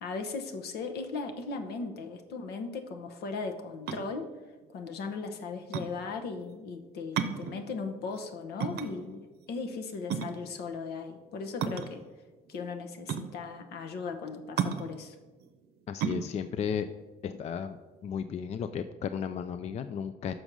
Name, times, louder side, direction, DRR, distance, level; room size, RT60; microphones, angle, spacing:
voice 1, 0.0-4.3 4.7-12.0 12.5-15.1, left 4 dB, 70° left, 6 dB, 1.0 m, -37 dB
sound 1, 3.7-18.1, right 7 dB, 75° right, 0.7 m, -36 dB
voice 2, 15.9-16.9 17.2-17.8 18.0-20.3, left 7 dB, 40° left, 10 dB, 0.4 m, -34 dB
6.2 x 5.2 x 6.1 m, 1.3 s
cardioid pair, 110°, 17 cm